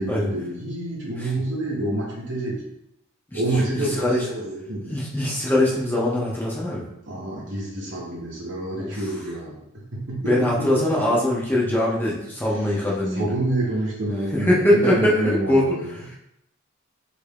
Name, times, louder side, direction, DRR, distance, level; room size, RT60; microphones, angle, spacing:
voice 1, 0.0-2.6 3.3-4.9 7.1-11.2 12.4-16.1, right 1 dB, 55° right, -4 dB, 0.7 m, -28 dB
voice 2, 4.9-6.9 8.8-9.0 10.2-13.3 14.3-15.7, left 1 dB, 10° left, -5 dB, 0.6 m, -22 dB
3.3 x 2.4 x 3.4 m, 0.81 s
head